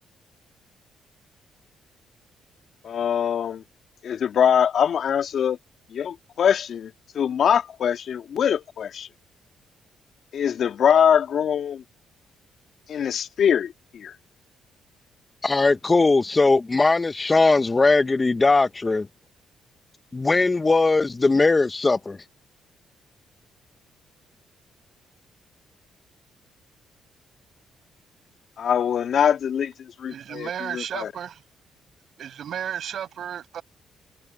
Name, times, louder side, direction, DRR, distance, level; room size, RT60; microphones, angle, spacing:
voice 1, 2.8-3.6 4.0-5.6 5.9-9.1 10.3-11.8 12.9-14.1 28.6-31.1, left 8 dB, 65° left, 2.3 m, -23 dB
voice 2, 15.4-19.1 20.1-22.2, left 3 dB, 25° left, 0.9 m, -19 dB
voice 3, 30.1-31.4 32.2-33.6, right 9 dB, 65° right, 6.5 m, -33 dB
supercardioid pair, 65°, 0 cm